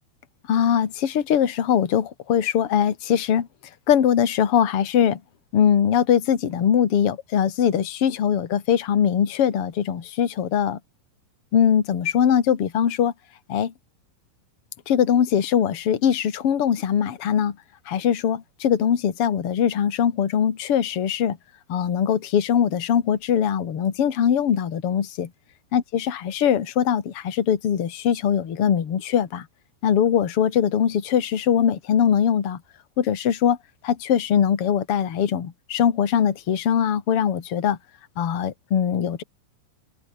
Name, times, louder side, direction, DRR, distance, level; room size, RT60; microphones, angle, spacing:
voice 1, 0.5-3.5 3.9-5.2 5.5-10.8 11.5-13.1 13.5-13.7 14.9-17.6 17.9-21.4 21.7-25.3 25.7-29.5 29.8-32.6 33.0-33.6 33.8-37.8 38.2-39.2, left 8 dB, 45° left, 2.2 m, -21 dB
omnidirectional pair, 5.0 m